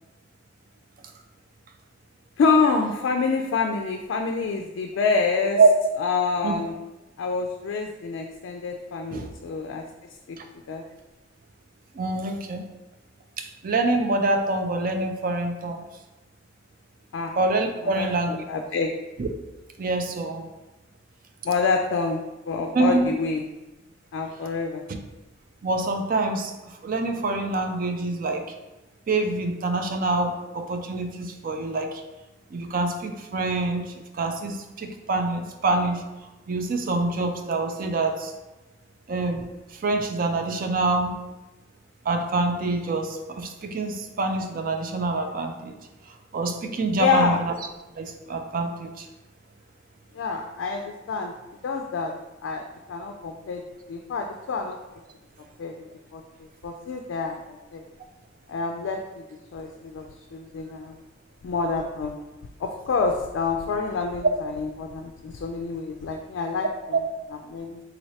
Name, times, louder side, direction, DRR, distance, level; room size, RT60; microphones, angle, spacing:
voice 1, 2.4-5.6 6.0-6.7 7.2-9.8 10.3-10.4 10.7-10.8 17.1-17.3 17.8-18.9 21.4-22.2 22.5-23.4 24.1-24.8 47.0-47.4 50.1-51.3 51.6-52.1 52.4-53.6 53.9-54.8 55.6-55.7 56.1-56.2 56.6-57.9 58.5-59.2 59.5-61.0 61.4-62.2 62.6-66.7 67.5-67.8, left 4 dB, 75° left, 3 dB, 0.3 m, -27 dB
voice 2, 11.9-12.7 13.4-15.8 17.4-18.4 19.2-19.3 19.8-20.5 22.7-23.1 25.6-26.5 26.8-28.5 29.1-32.0 32.5-36.0 36.5-38.3 39.1-39.4 39.8-41.2 42.1-45.7 46.3-47.5 48.0-49.1 66.9-67.0, right 3 dB, 45° right, 5 dB, 0.4 m, -25 dB
3.9 x 3.1 x 2.7 m, 1.0 s
head